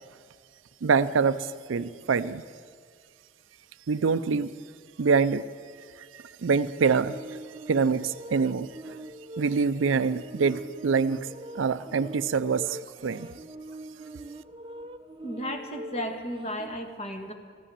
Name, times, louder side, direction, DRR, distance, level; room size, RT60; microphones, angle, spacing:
voice 1, 0.8-2.4 3.9-4.5 5.0-5.5 6.4-7.2 7.7-9.0 9.4-11.3 11.5-13.3, right 5 dB, 70° right, 13 dB, 0.5 m, -25 dB
sound 1, 6.9-16.8, right 1 dB, 25° right, 0.6 m, -43 dB
voice 2, 15.2-17.3, equal, 35° left, 4 dB, 1.5 m, -34 dB
14.5 x 11.0 x 7.6 m, 2.1 s
head